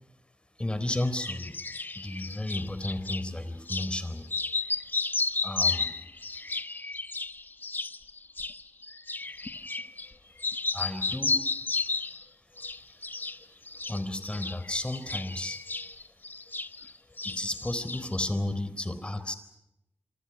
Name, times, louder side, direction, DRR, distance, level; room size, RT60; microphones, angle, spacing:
voice 1, 0.6-1.5 2.0-4.3 5.4-6.0 10.7-11.4 13.4-13.5 13.9-15.6 17.2-19.3, left 1 dB, 25° left, 11 dB, 3.8 m, -33 dB
sound 1, 0.9-3.2 3.7-3.9 4.2-10.1 10.4-12.2 12.6-13.4 13.7-16.9 17.2-18.2, left 3 dB, 45° left, 1.2 m, -33 dB
26.5 x 26.0 x 6.1 m, 0.86 s
wide cardioid pair, 65°, 5 cm